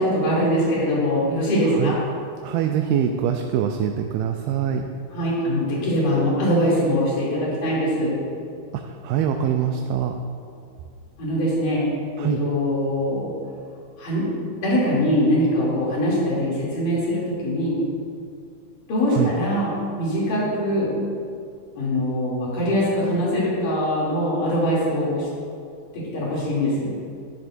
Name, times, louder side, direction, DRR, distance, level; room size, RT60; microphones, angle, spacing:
voice 1, 0.0-2.0 5.1-8.1 11.2-11.9 12.2-13.3 14.0-14.3 14.6-17.8 18.9-20.9 21.8-25.3 25.9-26.9, equal, 60° left, -7 dB, 4.3 m, -22 dB
voice 2, 2.4-4.8 8.8-10.1 12.2-12.4 19.1-19.3, right 9 dB, 80° right, 4 dB, 2.3 m, -24 dB
13.0 x 10.5 x 2.6 m, 2.3 s
omnidirectional pair, 4.3 m